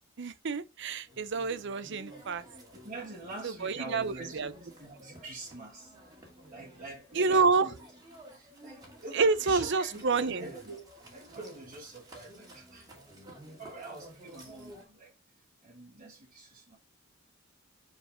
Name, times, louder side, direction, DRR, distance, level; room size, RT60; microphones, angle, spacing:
voice 1, 0.2-2.4 3.4-4.5 7.1-7.7 9.1-10.5, right 4 dB, 60° right, 0.7 m, -28 dB
sound 1, 1.1-14.8, right 1 dB, 20° right, 2.4 m, -52 dB
voice 2, 2.7-5.9 6.5-7.7 8.3-12.9 13.5-15.1 15.6-16.8, right 2 dB, 40° right, 2.0 m, -45 dB
4.8 x 4.7 x 5.0 m
head